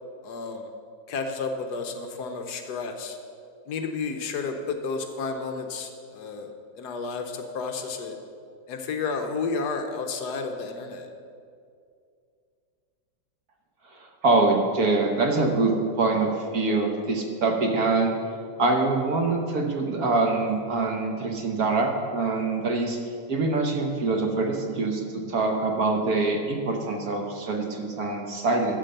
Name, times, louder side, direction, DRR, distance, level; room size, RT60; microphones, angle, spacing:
voice 1, 0.2-0.7 1.1-3.2 3.7-8.2 8.7-11.1, left 4 dB, 70° left, 6 dB, 1.2 m, -31 dB
voice 2, 13.9-18.1 18.6-23.0 23.3-28.8, right 3 dB, 60° right, 2 dB, 1.4 m, -24 dB
12.5 x 4.6 x 6.5 m, 2.4 s
omnidirectional pair, 2.0 m